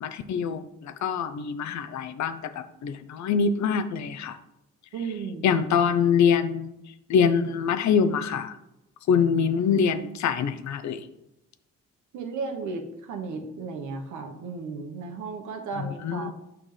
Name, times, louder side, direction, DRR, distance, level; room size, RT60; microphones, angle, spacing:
voice 1, 0.0-4.4 5.4-6.7 7.1-8.5 9.1-11.0 15.8-16.3, left 6 dB, 65° left, 10 dB, 0.7 m, -24 dB
voice 2, 4.9-5.5 12.1-16.3, right 4 dB, 80° right, 4 dB, 1.2 m, -34 dB
7.5 x 5.9 x 3.3 m, 0.87 s
cardioid pair, 90°, 30 cm